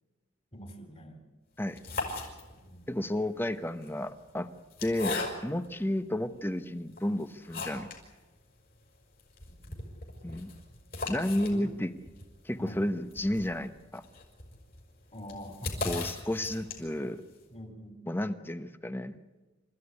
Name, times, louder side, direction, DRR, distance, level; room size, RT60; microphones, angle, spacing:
voice 1, 0.5-1.2 2.5-2.9 9.5-9.8 11.5-11.7 12.6-12.8 15.1-15.8 17.5-18.0, equal, 30° left, 6 dB, 3.8 m, -45 dB
sound 1, 1.6-2.8 3.7-5.7 6.3-6.4 6.9-8.1 8.4-8.5 8.7-8.8 9.2-17.1, left 3 dB, 45° left, 5.8 m, -39 dB
voice 2, 2.9-4.5 4.8-7.9 10.2-10.5 11.1-11.9 12.4-14.0 15.8-17.2 18.1-19.2, left 1 dB, 10° left, 11 dB, 0.9 m, -32 dB
27.5 x 15.0 x 9.8 m, 1.2 s
head